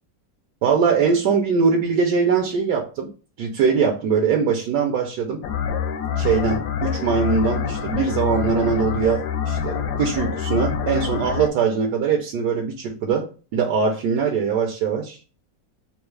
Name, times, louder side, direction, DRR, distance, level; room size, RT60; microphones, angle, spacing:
voice 1, 0.6-3.1 3.4-5.4 6.1-15.2, right 5 dB, 75° right, 2 dB, 1.1 m, -22 dB
sound 1, 5.4-11.5, left 7 dB, 75° left, 1.1 m, -26 dB
3.6 x 2.3 x 3.1 m, 0.36 s
omnidirectional pair, 1.9 m